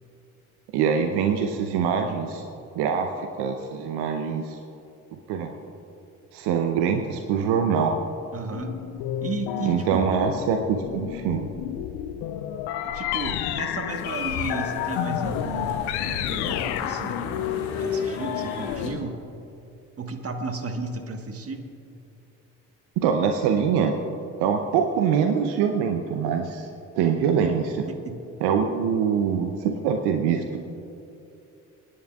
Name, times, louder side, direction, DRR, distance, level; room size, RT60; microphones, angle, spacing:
voice 1, 0.7-2.4 2.8-4.6 5.3-5.5 6.3-8.0 9.6-11.5 23.0-24.0 24.4-26.7 26.9-27.9 28.4-30.6, right 7 dB, 65° right, 5 dB, 0.8 m, -24 dB
voice 2, 8.3-8.8 9.2-10.1 12.8-17.3 17.7-19.2 20.0-21.7 27.4-27.5 27.9-28.2, right 3 dB, 35° right, 5 dB, 1.5 m, -34 dB
sound 1, 8.5-19.2, left 10 dB, 65° left, 0.8 m, -30 dB
sound 2, 13.9-18.9, left 3 dB, 80° left, 1.5 m, -37 dB
27.5 x 10.5 x 2.4 m, 2.7 s
hypercardioid pair, 50°, 42 cm